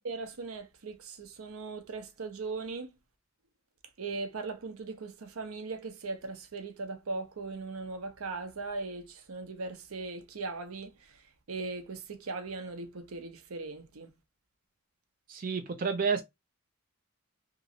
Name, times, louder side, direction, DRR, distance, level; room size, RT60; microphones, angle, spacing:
voice 1, 0.0-2.9 4.0-14.1, right 3 dB, 80° right, 0.6 m, -39 dB
voice 2, 15.3-16.2, right 5 dB, 40° right, 0.4 m, -30 dB
2.9 x 2.5 x 2.6 m
head